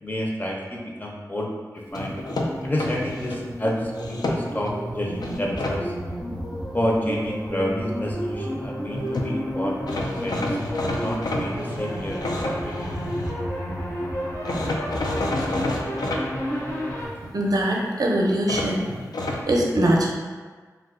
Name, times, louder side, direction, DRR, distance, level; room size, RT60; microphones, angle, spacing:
voice 1, 0.0-2.2 2.6-5.9 6.7-10.6 11.0-12.9, equal, 25° left, -2 dB, 0.6 m, -29 dB
sound 1, 1.9-3.4 3.9-4.7 5.2-5.8 8.9-9.0 9.1-9.3 9.9-13.3 14.4-16.2 18.5-19.4, left 2 dB, 85° left, 0.3 m, -29 dB
sound 2, 1.9-17.1, equal, 50° left, 1.1 m, -31 dB
voice 2, 17.3-18.8 19.5-20.1, right 1 dB, 70° right, -1 dB, 0.5 m, -21 dB
2.6 x 2.3 x 3.6 m, 1.5 s
wide cardioid pair, 70°, 7 cm